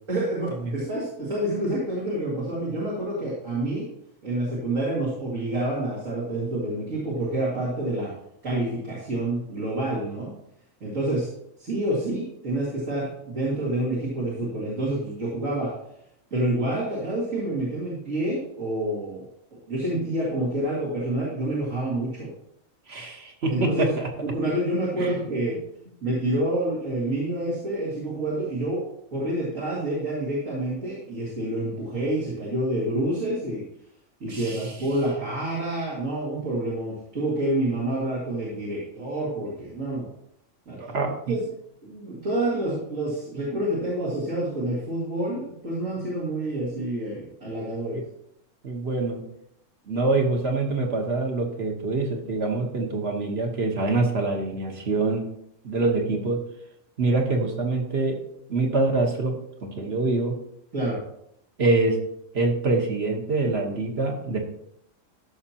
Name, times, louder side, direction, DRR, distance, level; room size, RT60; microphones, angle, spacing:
voice 1, 0.1-3.9 4.2-8.1 8.4-10.3 10.8-11.3 11.6-15.7 16.3-19.2 19.5-22.3 23.5-23.9 24.2-25.6 26.0-28.8 29.1-33.6 34.2-40.1 40.7-40.8 41.3-41.4 41.8-48.0 60.7-61.0, right 1 dB, 85° right, -7 dB, 2.6 m, -28 dB
voice 2, 22.9-24.1 25.0-25.1 34.3-34.7 40.8-41.1 47.9-48.0 48.6-49.2 49.9-55.2 55.6-56.4 57.0-58.2 58.5-60.3 61.6-62.0 62.3-64.4, right 3 dB, 55° right, 2 dB, 1.5 m, -25 dB
13.5 x 5.9 x 2.9 m, 0.75 s
omnidirectional pair, 1.3 m